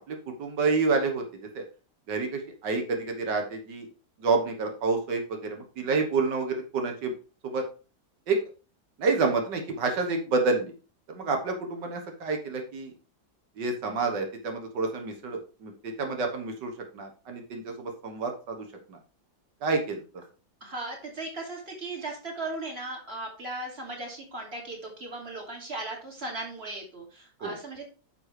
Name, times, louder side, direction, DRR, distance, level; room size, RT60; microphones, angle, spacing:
voice 1, 0.0-1.7 2.1-3.9 4.2-7.1 7.4-7.6 8.3-8.4 9.0-10.7 11.1-12.9 13.6-19.0 19.6-20.0 27.4-27.6, right 4 dB, 90° right, 4 dB, 1.9 m, -29 dB
voice 2, 20.6-27.8, right 2 dB, 35° right, 0 dB, 2.9 m, -37 dB
9.5 x 6.2 x 3.3 m, 0.34 s
omnidirectional pair, 1.9 m